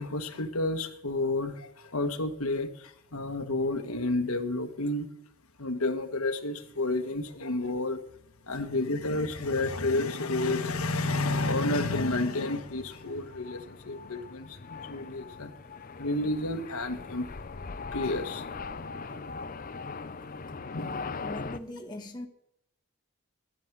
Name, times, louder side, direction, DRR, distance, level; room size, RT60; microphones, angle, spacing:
voice 1, 0.0-5.1 5.6-8.0 8.5-15.5 16.0-17.3 17.9-18.4 18.8-19.2 20.7-21.1, left 2 dB, 75° left, 1.3 m, -30 dB
sound 1, 12.4-21.6, left 4 dB, 40° left, 0.6 m, -40 dB
voice 2, 21.2-22.3, left 1 dB, 20° left, 1.2 m, -40 dB
11.0 x 9.2 x 9.2 m
head